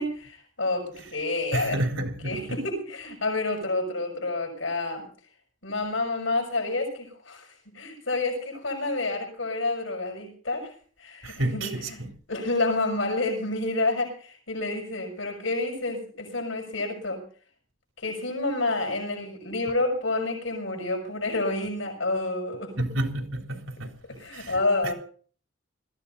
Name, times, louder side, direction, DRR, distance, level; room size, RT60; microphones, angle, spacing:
voice 1, 0.0-1.8 2.2-5.0 5.6-10.7 11.0-12.0 12.3-17.2 18.0-22.9 24.2-24.9, left 2 dB, 75° left, 6.4 m, -29 dB
voice 2, 1.5-2.6 11.2-12.1 22.8-23.9 24.3-24.5, right 1 dB, 80° right, 3.7 m, -30 dB
20.5 x 14.5 x 4.0 m
head